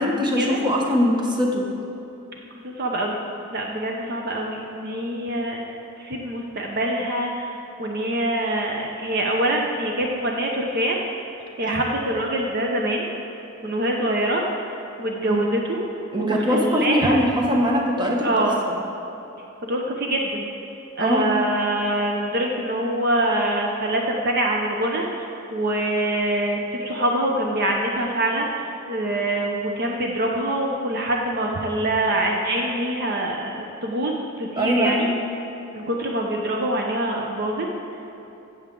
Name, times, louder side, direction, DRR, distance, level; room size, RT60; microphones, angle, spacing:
voice 1, 0.0-1.7 11.6-11.8 15.3-15.4 16.1-18.5 21.0-21.3 34.6-35.2, equal, 20° right, -1 dB, 1.1 m, -22 dB
voice 2, 2.6-3.2 3.5-7.5 7.8-11.0 11.6-13.1 13.6-14.4 15.0-15.8 16.2-17.2 18.2-18.6 19.7-20.5 21.0-28.5 28.9-35.1 35.7-37.7, right 1 dB, 50° right, 0 dB, 0.8 m, -24 dB
15.5 x 7.1 x 3.8 m, 2.9 s
head